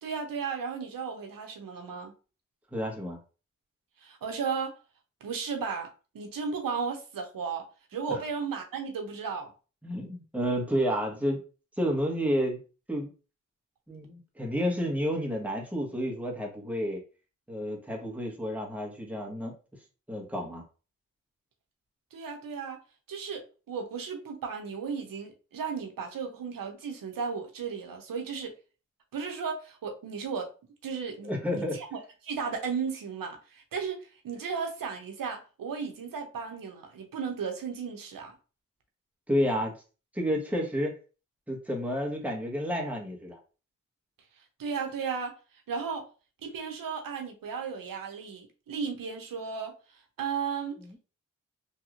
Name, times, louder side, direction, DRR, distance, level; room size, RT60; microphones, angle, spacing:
voice 1, 0.0-2.1 4.0-4.7 5.2-5.9 6.1-7.6 7.9-9.5 22.1-22.8 23.1-28.5 29.1-30.5 30.8-38.3 44.6-45.3 45.7-46.0 46.4-49.7 50.2-50.8, right 5 dB, 85° right, 0.7 m, -35 dB
voice 2, 2.7-3.2 8.1-8.2 9.8-11.4 11.8-12.6 12.9-13.1 13.9-17.0 17.5-19.5 20.1-20.6 31.3-31.8 39.3-39.7 40.1-40.9 41.5-43.4 50.8-51.0, equal, 5° right, 1.2 m, -30 dB
3.2 x 2.7 x 2.5 m
cardioid pair, 40°, 33 cm